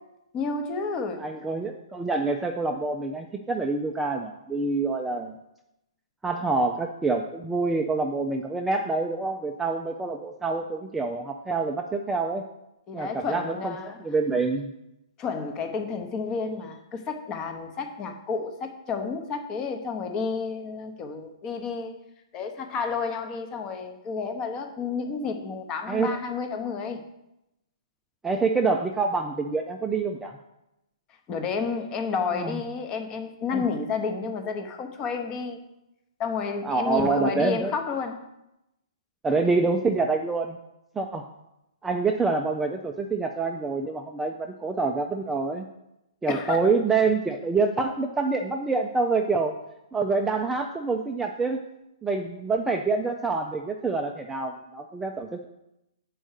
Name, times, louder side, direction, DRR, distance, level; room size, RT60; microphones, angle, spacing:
voice 1, 0.3-1.3 12.9-14.0 15.2-21.9 22.3-27.0 31.3-35.6 36.2-38.2 46.3-46.7, left 5 dB, 20° left, 6 dB, 0.7 m, -31 dB
voice 2, 1.2-5.3 6.2-12.5 12.9-14.7 25.9-26.2 28.2-30.4 32.3-32.6 33.5-33.7 36.6-37.7 39.2-40.6 41.0-41.3 41.8-45.7 46.2-49.6 49.9-51.6 52.0-55.5, right 3 dB, 5° right, 2 dB, 0.3 m, -26 dB
6.2 x 4.6 x 6.4 m, 0.87 s
hypercardioid pair, 155°, 3 cm